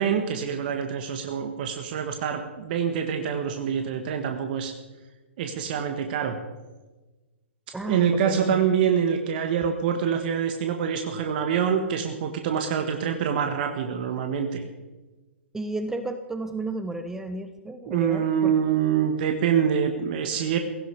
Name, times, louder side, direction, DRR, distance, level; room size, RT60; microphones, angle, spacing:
voice 1, 0.0-4.7 5.4-6.4 7.7-14.6 17.9-20.6, right 8 dB, 50° right, 5 dB, 1.7 m, -25 dB
voice 2, 7.7-8.6 15.5-18.6, right 2 dB, 5° right, 9 dB, 0.9 m, -33 dB
17.0 x 16.0 x 4.9 m, 1.2 s
hypercardioid pair, 120°, 7 cm